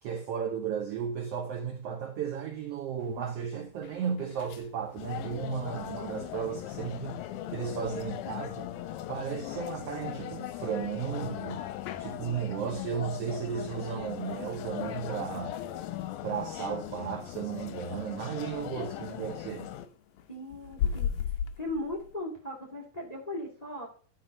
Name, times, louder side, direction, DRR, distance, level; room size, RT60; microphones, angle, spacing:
voice 1, 0.0-8.7 9.1-11.7 12.0-15.6 16.2-19.7, right 7 dB, 80° right, 1.4 m, -35 dB
sound 1, 3.0-22.2, left 8 dB, 75° left, 1.7 m, -42 dB
sound 2, 5.0-19.9, left 12 dB, 90° left, 2.5 m, -39 dB
voice 2, 20.3-23.9, left 1 dB, 15° left, 1.6 m, -38 dB
12.0 x 4.3 x 5.3 m
omnidirectional pair, 4.1 m